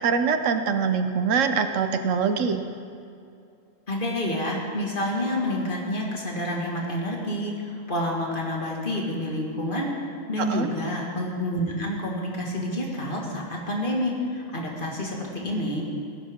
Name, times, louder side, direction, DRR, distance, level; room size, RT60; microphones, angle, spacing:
voice 1, 0.0-2.6 10.4-10.7, right 6 dB, 75° right, 8 dB, 1.1 m, -24 dB
voice 2, 3.9-9.9 10.3-15.8, left 1 dB, 40° left, -2 dB, 2.1 m, -28 dB
18.5 x 11.0 x 3.7 m, 2.5 s
omnidirectional pair, 1.3 m